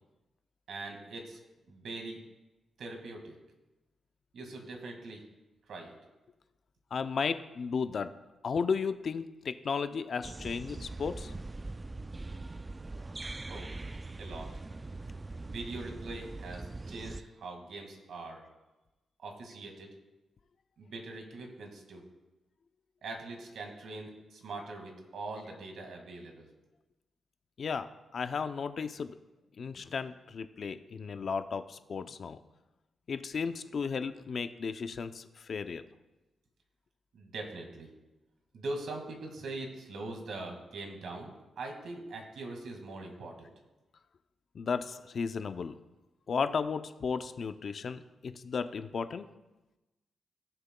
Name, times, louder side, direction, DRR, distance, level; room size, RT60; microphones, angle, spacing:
voice 1, 0.7-1.4 1.7-2.2 2.8-3.3 4.3-5.2 5.7-5.9 13.5-13.7 14.2-14.5 15.4-18.4 19.2-19.9 20.8-22.0 23.0-26.5 37.1-37.9 38.5-43.5, right 2 dB, 75° right, 3 dB, 1.9 m, -42 dB
voice 2, 6.9-8.1 8.4-11.3 27.6-29.2 29.6-32.4 33.1-35.8 44.5-45.8 46.3-49.3, left 5 dB, 55° left, 10 dB, 0.5 m, -34 dB
sound 1, 10.2-17.2, right 2 dB, 25° right, 0.3 m, -42 dB
16.5 x 6.8 x 2.2 m, 1.1 s
cardioid pair, 90°, 0 cm